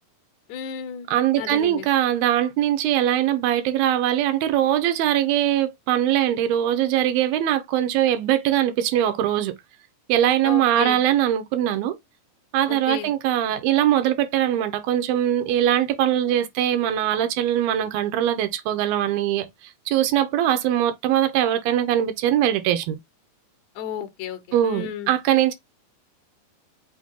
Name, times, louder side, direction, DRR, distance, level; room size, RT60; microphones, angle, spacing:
voice 1, 0.5-1.1 1.4-1.9 10.4-11.0 12.7-13.1 23.7-25.1, left 8 dB, 70° left, 1.7 m, -33 dB
voice 2, 1.1-9.5 10.1-12.0 12.5-23.0 24.5-25.5, right 11 dB, 85° right, 2.5 m, -21 dB
6.1 x 2.2 x 3.6 m
omnidirectional pair, 4.2 m